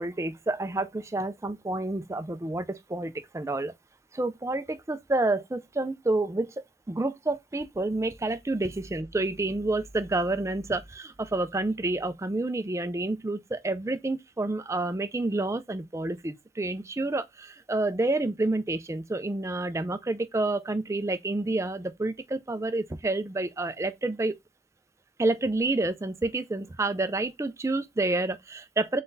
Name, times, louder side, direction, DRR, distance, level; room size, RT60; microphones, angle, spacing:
voice 1, 0.0-3.7 4.1-6.5 6.9-24.3 25.2-29.0, right 2 dB, 15° right, 0.3 m, -29 dB
4.0 x 4.0 x 2.6 m
head